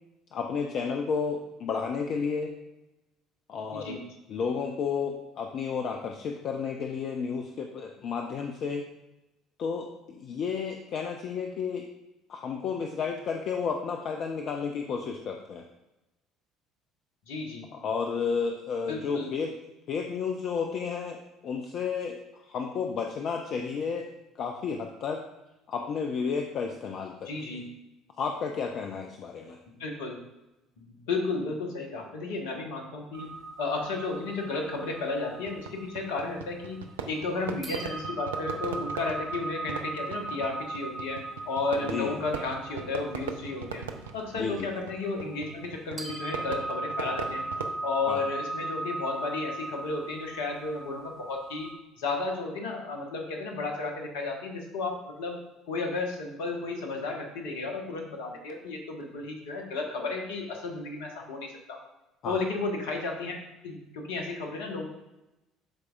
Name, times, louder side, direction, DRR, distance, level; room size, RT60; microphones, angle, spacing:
voice 1, 0.3-2.5 3.5-4.0 4.3-8.8 9.6-11.9 12.3-15.7 17.7-19.5 19.9-24.1 24.4-25.2 25.7-27.3 28.2-29.6 41.8-42.2 44.3-44.7 48.1-48.2 62.2-62.4, left 5 dB, 45° left, 3 dB, 0.6 m, -32 dB
voice 2, 3.7-4.0 17.3-17.7 18.9-19.3 27.2-27.7 29.7-30.2 30.8-33.3 33.6-36.8 37.1-41.2 41.5-43.9 44.1-47.4 47.8-51.7 52.0-55.4 55.7-61.8 62.2-63.3 63.6-64.9, left 3 dB, 65° left, 2 dB, 1.2 m, -33 dB
sound 1, 33.1-37.2 37.6-45.7 46.0-51.7, right 2 dB, 30° right, 1.2 m, -38 dB
Fireworks, 35.4-47.8, right 6 dB, 75° right, 0.5 m, -40 dB
12.5 x 4.8 x 2.4 m, 0.99 s
figure-of-eight pair, 55°, 0 cm